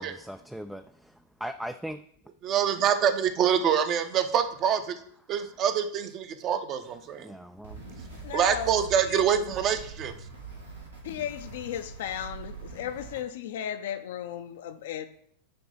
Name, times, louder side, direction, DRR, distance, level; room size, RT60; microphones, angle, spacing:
voice 1, 0.0-2.0 7.2-7.8, equal, ahead, 9 dB, 0.3 m, -39 dB
voice 2, 2.4-5.0 5.3-7.4 8.3-10.1, right 8 dB, 35° right, 9 dB, 0.7 m, -25 dB
sound 1, 7.6-13.2, right 4 dB, 75° right, 2.0 m, -43 dB
voice 3, 8.2-8.8 9.0-9.2 11.0-15.1, left 10 dB, 55° left, 9 dB, 0.5 m, -35 dB
8.7 x 3.0 x 5.4 m, 0.66 s
figure-of-eight pair, 90°, 0 cm